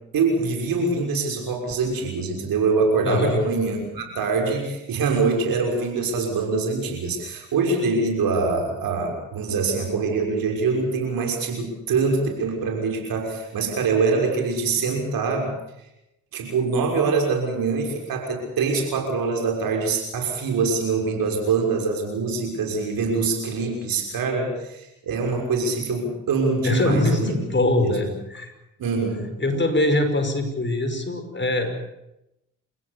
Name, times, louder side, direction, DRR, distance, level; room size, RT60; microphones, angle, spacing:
voice 1, 0.1-15.5 16.3-27.4 27.8-28.1 28.8-29.2, right 4 dB, 65° right, 2 dB, 6.4 m, -24 dB
voice 2, 3.0-3.4 26.6-28.5 29.2-31.7, left 2 dB, 30° left, 7 dB, 5.4 m, -23 dB
29.0 x 16.5 x 7.1 m, 0.86 s
hypercardioid pair, 45°, 37 cm